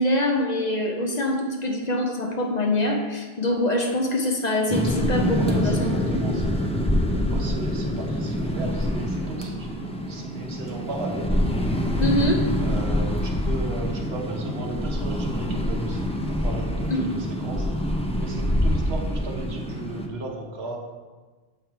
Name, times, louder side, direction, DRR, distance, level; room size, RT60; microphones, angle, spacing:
voice 1, 0.0-6.2 12.0-12.4 16.9-17.2, left 1 dB, 45° left, 1 dB, 0.8 m, -24 dB
sound 1, 4.7-20.1, equal, 10° left, 0.3 m, -26 dB
voice 2, 5.4-6.5 7.3-11.4 12.6-17.7 18.2-20.8, right 2 dB, 75° right, 0 dB, 1.2 m, -36 dB
7.3 x 3.6 x 4.6 m, 1.4 s
omnidirectional pair, 1.1 m